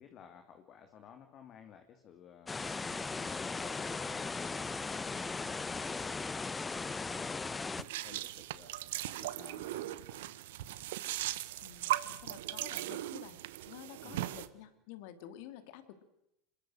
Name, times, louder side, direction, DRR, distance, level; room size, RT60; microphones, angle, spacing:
voice 1, 0.0-2.5 2.8-4.5 4.8-8.7 9.0-10.3 14.0-14.3, left 8 dB, 45° left, 6 dB, 2.9 m, -55 dB
sound 1, 2.5-7.8, left 4 dB, 15° left, 0.9 m, -37 dB
sound 2, 7.8-14.5, right 15 dB, 70° right, 1.2 m, -38 dB
voice 2, 11.6-13.4 13.7-16.0, left 11 dB, 65° left, 10 dB, 2.9 m, -51 dB
27.0 x 22.0 x 6.5 m, 0.81 s
hypercardioid pair, 85°, 0 cm